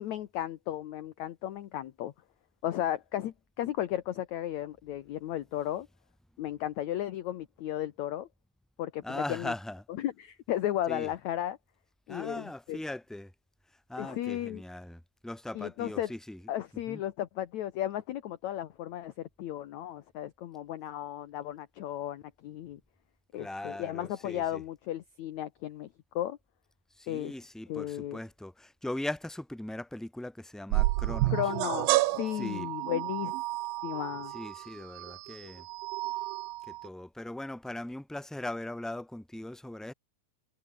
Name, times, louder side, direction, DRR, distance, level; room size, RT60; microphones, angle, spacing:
voice 1, 0.0-2.1 2.6-5.9 6.4-8.3 8.8-9.5 10.0-11.6 12.1-12.8 14.0-14.6 15.6-16.1 16.5-22.8 23.3-25.9 26.2-26.4 27.1-27.3 27.7-28.2 31.3-33.3 33.8-34.3, left 12 dB, 65° left, 2.0 m, -34 dB
voice 2, 9.0-9.8 10.9-11.1 12.1-13.3 13.9-16.4 16.9-17.0 23.4-24.6 27.0-31.4 32.3-32.7 34.3-35.6 36.7-39.9, left 1 dB, ahead, 3.5 m, -39 dB
sound 1, 30.7-36.9, right 20 dB, 85° right, 2.4 m, -31 dB
omnidirectional pair, 4.3 m